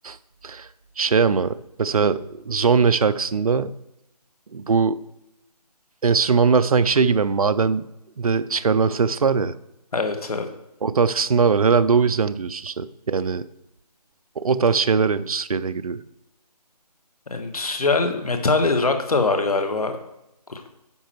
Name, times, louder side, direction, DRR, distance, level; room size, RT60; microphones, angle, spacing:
voice 1, 1.0-3.8 4.5-5.0 6.0-7.9 8.2-9.6 10.8-13.4 14.4-16.0, right 5 dB, 60° right, 14 dB, 0.5 m, -20 dB
voice 2, 9.9-10.5 17.3-20.0 20.5-20.6, left 3 dB, 60° left, 6 dB, 1.5 m, -22 dB
9.8 x 6.0 x 4.5 m, 0.88 s
figure-of-eight pair, 170°, 21 cm